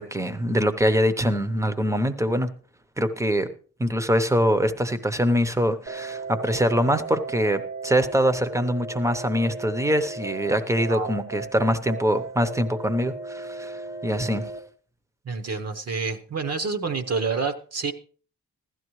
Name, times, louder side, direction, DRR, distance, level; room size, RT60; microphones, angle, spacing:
voice 1, 0.0-2.5 3.0-3.5 3.8-14.5, equal, 10° right, 10 dB, 0.8 m, -24 dB
sound 1, 5.9-14.6, right 3 dB, 85° right, 1.6 m, -36 dB
voice 2, 15.3-17.9, right 4 dB, 45° right, 8 dB, 0.9 m, -28 dB
16.0 x 12.5 x 3.1 m, 0.41 s
wide cardioid pair, 145°, 35 cm